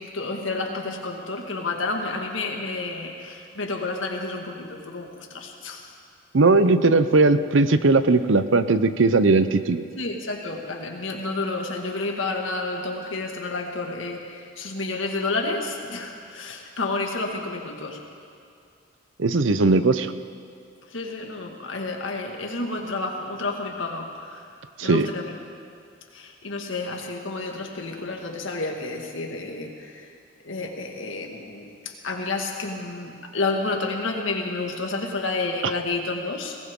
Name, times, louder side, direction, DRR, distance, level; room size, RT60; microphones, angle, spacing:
voice 1, 0.0-5.9 9.9-18.0 20.9-24.5 24.8-25.4 26.1-30.1 30.4-36.6, left 3 dB, 80° left, 2 dB, 1.9 m, -30 dB
voice 2, 6.3-9.8 19.2-20.1 24.8-25.1, right 3 dB, 75° right, 12 dB, 0.7 m, -18 dB
21.0 x 18.5 x 3.7 m, 2.4 s
head